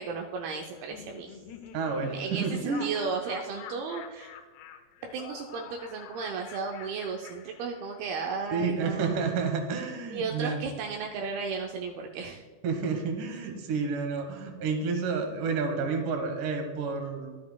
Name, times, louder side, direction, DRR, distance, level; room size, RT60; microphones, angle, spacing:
voice 1, 0.0-1.4 2.0-4.3 5.1-9.3 10.1-12.4, right 5 dB, 85° right, 1 dB, 2.2 m, -35 dB
Laughter, 0.7-8.2, left 8 dB, 80° left, 2.6 m, -47 dB
voice 2, 1.7-2.9 8.5-10.6 12.6-17.4, right 5 dB, 65° right, 3 dB, 2.3 m, -30 dB
12.5 x 8.1 x 2.3 m, 1.5 s
omnidirectional pair, 5.1 m